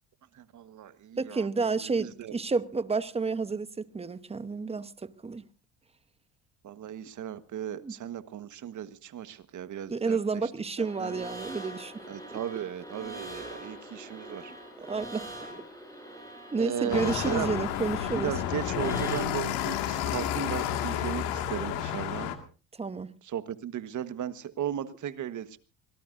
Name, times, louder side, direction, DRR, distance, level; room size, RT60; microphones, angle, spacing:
voice 1, 0.3-2.4 6.6-10.5 10.8-11.1 12.1-14.5 16.6-17.5 18.1-22.3 23.2-25.6, right 10 dB, 50° right, 1.4 m, -36 dB
voice 2, 1.2-5.5 7.8-7.9 9.9-12.0 14.8-15.3 15.5-15.6 16.5-18.3 22.8-23.1, right 4 dB, 15° right, 1.0 m, -30 dB
sound 1, 10.8-19.3, right 1 dB, 10° left, 8.0 m, -43 dB
sound 2, 16.9-22.3, left 10 dB, 85° left, 2.1 m, -31 dB
24.5 x 18.5 x 2.6 m
supercardioid pair, 90°, 38 cm